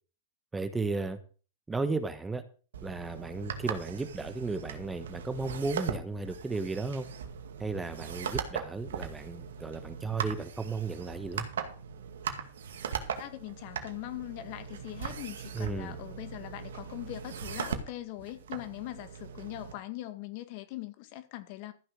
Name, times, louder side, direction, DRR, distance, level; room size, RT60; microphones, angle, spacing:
voice 1, 0.5-1.2 1.7-2.4 2.8-7.1 7.6-11.5 15.5-16.0, right 3 dB, 10° right, 1.2 m, -34 dB
sound 1, 2.7-19.7, right 7 dB, 85° right, 2.2 m, -39 dB
voice 2, 13.1-21.7, left 16 dB, 50° left, 1.9 m, -41 dB
14.0 x 6.2 x 6.4 m
hypercardioid pair, 130°, 0 cm